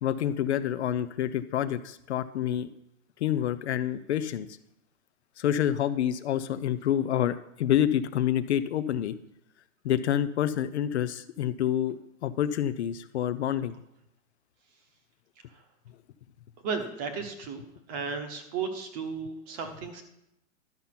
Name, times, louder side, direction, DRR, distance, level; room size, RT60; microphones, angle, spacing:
voice 1, 0.0-2.7 3.2-4.5 5.4-9.1 9.8-13.7, left 10 dB, 50° left, 12 dB, 0.6 m, -28 dB
voice 2, 16.6-17.6 17.9-20.0, right 5 dB, 20° right, 7 dB, 0.9 m, -34 dB
12.0 x 5.5 x 5.8 m, 0.83 s
hypercardioid pair, 160°, 42 cm